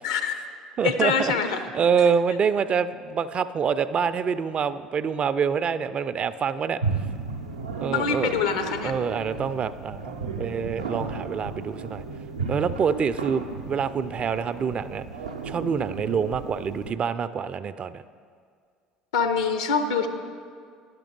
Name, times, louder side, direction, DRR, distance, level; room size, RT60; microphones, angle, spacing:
voice 1, 0.0-0.3 0.8-1.6 7.9-8.9 19.1-20.1, left 6 dB, 75° left, 8 dB, 0.7 m, -24 dB
voice 2, 0.8-1.3 1.7-6.8 7.8-8.3 8.8-12.0 12.5-15.0 15.4-18.0, right 6 dB, 35° right, 13 dB, 0.3 m, -26 dB
sound 1, 6.8-16.9, right 4 dB, 85° right, 0.5 m, -34 dB
10.5 x 6.0 x 5.2 m, 2.1 s
figure-of-eight pair, 65°, 3 cm